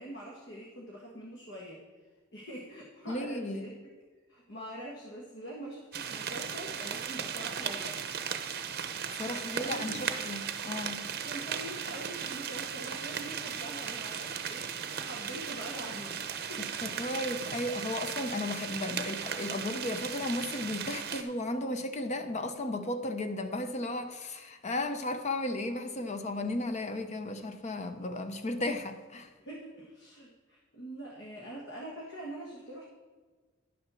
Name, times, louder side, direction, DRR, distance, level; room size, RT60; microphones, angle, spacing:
voice 1, 0.0-1.8 2.3-3.7 4.3-8.0 9.2-10.0 11.2-16.7 29.4-32.8, right 1 dB, 60° left, 1.5 m, -44 dB
voice 2, 3.1-3.7 9.1-11.1 16.6-29.3, left 2 dB, 35° left, 0.7 m, -35 dB
sound 1, 5.9-21.2, right 7 dB, 50° right, 0.7 m, -37 dB
10.5 x 6.1 x 6.1 m
head